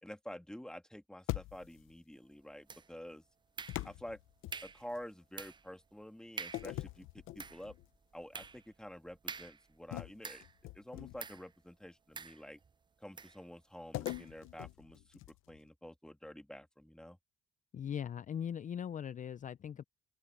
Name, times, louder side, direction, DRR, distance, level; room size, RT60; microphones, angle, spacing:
voice 1, 0.0-3.2 3.8-4.2 4.6-7.8 8.1-10.4 10.7-12.6 13.0-15.2 15.5-17.2, equal, 5° left, 2.2 m, -49 dB
sound 1, 1.3-1.9 3.7-5.0 6.5-7.9 8.3-8.6 9.9-11.4 13.9-15.6, left 16 dB, 90° left, 0.8 m, -43 dB
sound 2, 2.7-3.1 3.6-4.1 4.5-4.9 5.4-5.7 6.0-6.1 6.4-6.8 7.2-10.7 11.2-11.5 12.2-12.7 13.2-13.4 14.1-14.3, right 5 dB, 25° right, 0.4 m, -47 dB
voice 2, 17.7-19.8, left 8 dB, 40° left, 0.5 m, -40 dB
open air
cardioid pair, 90°, 20 cm